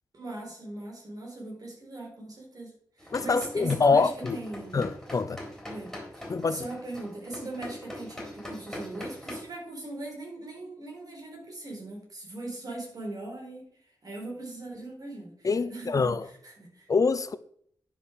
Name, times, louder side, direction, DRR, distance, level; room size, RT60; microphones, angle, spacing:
voice 1, 0.1-4.8 5.7-16.2 16.4-16.9, right 2 dB, 50° right, 4.2 m, -40 dB
sound 1, 3.0-9.4, left 1 dB, 5° left, 3.9 m, -42 dB
voice 2, 3.1-4.4 4.7-5.4 6.3-6.6 15.4-16.3 16.9-17.4, left 4 dB, 45° left, 0.6 m, -25 dB
10.0 x 5.6 x 6.4 m
wide cardioid pair, 135°, 8 cm